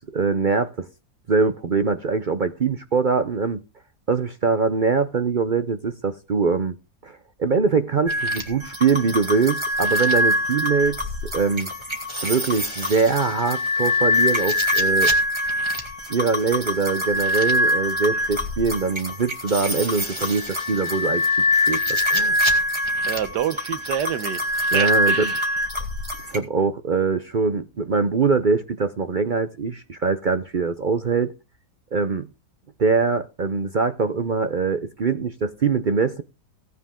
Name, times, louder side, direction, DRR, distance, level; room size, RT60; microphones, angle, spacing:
voice 1, 0.1-0.9 1.3-3.6 4.1-6.7 7.0-11.0 11.3-11.7 12.2-15.1 16.1-22.6 24.7-25.3 26.3-31.3 31.9-32.3 32.8-36.2, right 5 dB, 60° right, 0.5 m, -23 dB
sound 1, 8.1-26.4, left 1 dB, 15° right, 2.2 m, -24 dB
voice 2, 23.1-25.5, right 10 dB, 85° right, 1.5 m, -28 dB
17.0 x 9.5 x 3.7 m
omnidirectional pair, 1.8 m